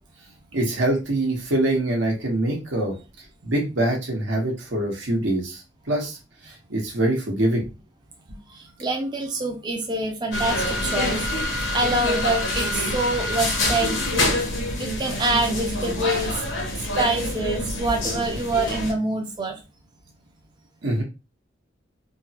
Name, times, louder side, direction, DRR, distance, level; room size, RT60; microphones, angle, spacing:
voice 1, 0.5-2.9 3.4-5.6 5.9-6.2 6.4-7.7 8.3-8.4 20.8-21.0, right 1 dB, 90° right, 0 dB, 1.1 m, -24 dB
voice 2, 8.5-14.4 14.8-16.4 17.0-19.6, right 2 dB, 25° right, 2 dB, 0.4 m, -26 dB
sound 1, 10.3-18.9, left 1 dB, 85° left, 1.0 m, -26 dB
3.2 x 2.1 x 2.8 m, 0.28 s
head